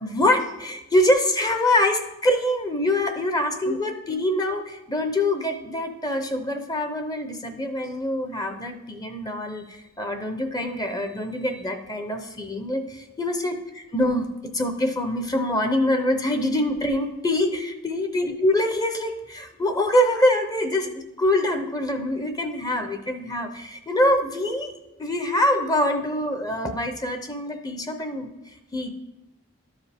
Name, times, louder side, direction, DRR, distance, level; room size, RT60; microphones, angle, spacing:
voice 1, 0.0-24.7 25.0-28.3 28.7-28.9, left 1 dB, 20° left, 7 dB, 0.6 m, -24 dB
12.5 x 4.8 x 3.4 m, 0.94 s
head